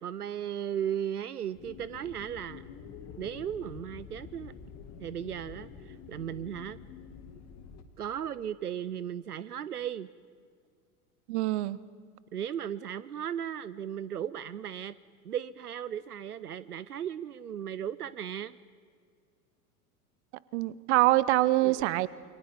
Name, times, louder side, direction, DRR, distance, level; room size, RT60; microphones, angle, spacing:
voice 1, 0.0-2.6 3.2-4.5 5.0-6.8 8.0-10.1 12.3-14.9 15.2-18.6 21.6-21.9, right 9 dB, 80° right, 18 dB, 0.6 m, -36 dB
sound 1, 1.5-7.8, left 7 dB, 35° left, 2.1 m, -47 dB
voice 2, 11.3-11.8 20.5-22.1, right 17 dB, 50° right, 19 dB, 0.9 m, -25 dB
28.5 x 23.5 x 5.3 m, 2.1 s
figure-of-eight pair, 85°, 45 cm